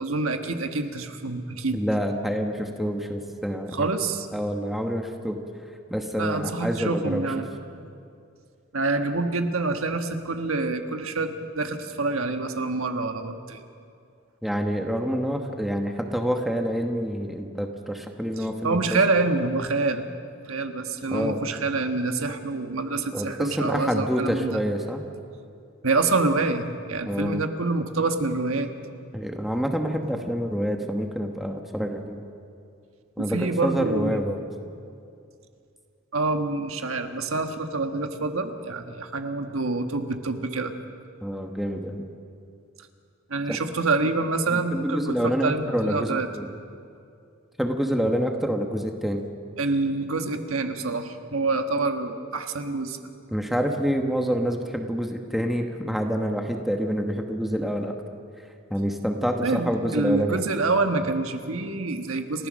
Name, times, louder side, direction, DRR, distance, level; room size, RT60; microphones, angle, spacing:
voice 1, 0.0-1.8 3.7-4.3 6.2-7.5 8.7-13.6 18.6-20.0 20.5-24.6 25.8-28.7 33.2-34.2 36.1-40.7 43.3-46.3 49.6-53.0 59.4-62.5, right 3 dB, 80° right, 6 dB, 1.4 m, -26 dB
voice 2, 1.7-3.9 4.3-5.4 5.9-7.3 14.4-19.0 21.1-21.4 23.1-25.0 27.0-27.4 29.1-32.2 33.2-34.4 41.2-42.1 43.5-43.6 44.0-44.1 44.5-46.5 47.6-49.2 53.3-57.9 58.7-60.4, equal, ahead, 3 dB, 1.2 m, -27 dB
29.5 x 14.5 x 6.4 m, 2.4 s
head